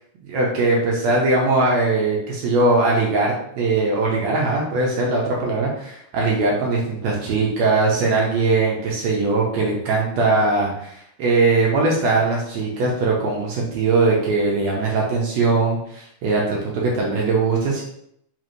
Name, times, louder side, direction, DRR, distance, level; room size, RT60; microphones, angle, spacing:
voice 1, 0.2-17.8, right 3 dB, 75° right, -3 dB, 1.6 m, -20 dB
4.9 x 3.1 x 2.6 m, 0.73 s
omnidirectional pair, 3.9 m